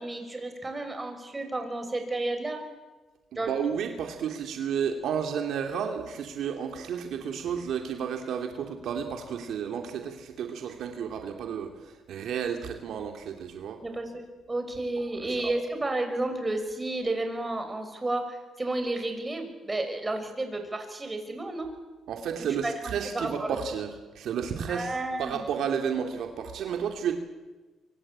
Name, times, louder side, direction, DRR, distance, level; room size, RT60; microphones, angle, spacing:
voice 1, 0.0-2.6 3.3-3.5 13.8-21.7 22.4-22.7 23.0-23.6 24.7-25.5, right 2 dB, 20° right, 6 dB, 6.2 m, -32 dB
voice 2, 3.3-11.8 12.1-13.8 15.1-15.5 22.1-24.9 25.2-27.2, right 7 dB, 75° right, 4 dB, 2.7 m, -32 dB
25.0 x 24.5 x 8.8 m, 1.2 s
cardioid pair, 90°, 0 cm